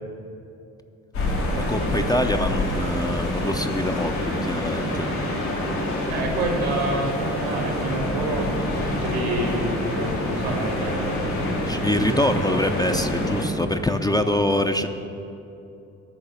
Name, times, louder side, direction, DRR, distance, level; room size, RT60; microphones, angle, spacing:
sound 1, 1.1-13.4, left 1 dB, 80° left, 2.2 m, -26 dB
voice 1, 1.6-5.1 11.7-14.9, left 1 dB, 10° left, 6 dB, 0.6 m, -24 dB
voice 2, 6.1-12.3, right 2 dB, 85° right, 0 dB, 1.9 m, -28 dB
12.0 x 4.7 x 8.5 m, 2.8 s
figure-of-eight pair, 40°, 43 cm